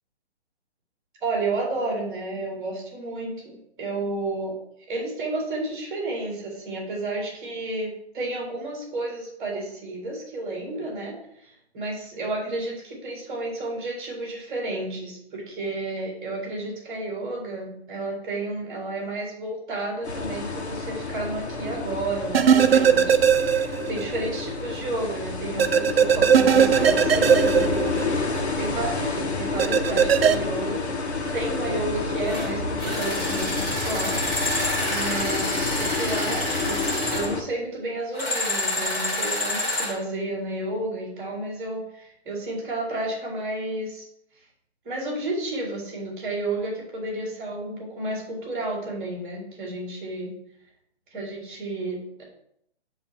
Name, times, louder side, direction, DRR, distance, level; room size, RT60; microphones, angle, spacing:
voice 1, 1.2-4.6 4.9-30.8 31.3-34.4 34.9-44.0 44.8-50.3 51.1-52.2, right 2 dB, 10° right, -2 dB, 1.7 m, -31 dB
sound 1, 20.0-37.4, left 3 dB, 80° left, 1.5 m, -29 dB
sound 2, 22.3-24.0 24.3-24.4 25.6-28.4 29.6-30.3, right 8 dB, 65° right, 0.6 m, -18 dB
sound 3, 32.3-32.5 32.8-37.3 38.1-40.0, left 1 dB, 15° left, 1.1 m, -28 dB
7.2 x 3.2 x 5.9 m, 0.74 s
hypercardioid pair, 165°, 33 cm